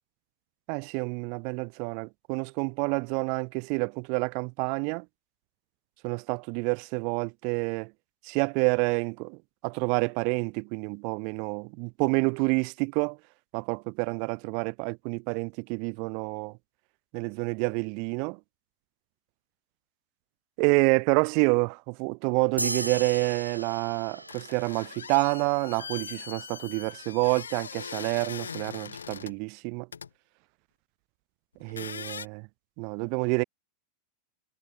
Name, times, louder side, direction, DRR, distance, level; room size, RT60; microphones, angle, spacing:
voice 1, 0.7-5.0 6.0-7.9 8.2-13.2 13.5-16.5 17.1-18.4 20.6-29.9 31.6-32.5 32.8-33.4, right 38 dB, 45° right, 0.4 m, -28 dB
sound 1, 22.6-25.3, right 1 dB, 85° right, 4.2 m, -36 dB
sound 2, 24.3-29.4 29.9-30.1 31.6-32.3, left 6 dB, 70° left, 7.4 m, -41 dB
figure-of-eight pair, 90°, 0 cm